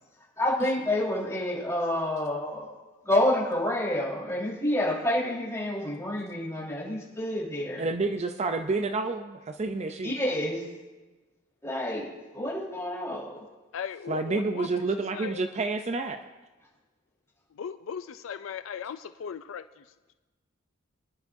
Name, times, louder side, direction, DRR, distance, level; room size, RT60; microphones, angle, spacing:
voice 1, 0.4-2.7 3.0-7.8 10.0-10.7 11.6-13.4, left 1 dB, 15° left, -6 dB, 4.2 m, -28 dB
voice 2, 7.8-10.1 14.1-16.2, right 3 dB, 35° right, 7 dB, 0.5 m, -29 dB
voice 3, 13.7-14.7 15.1-15.4 17.5-19.8, left 7 dB, 70° left, 11 dB, 0.4 m, -37 dB
24.0 x 10.5 x 2.7 m, 1.2 s
head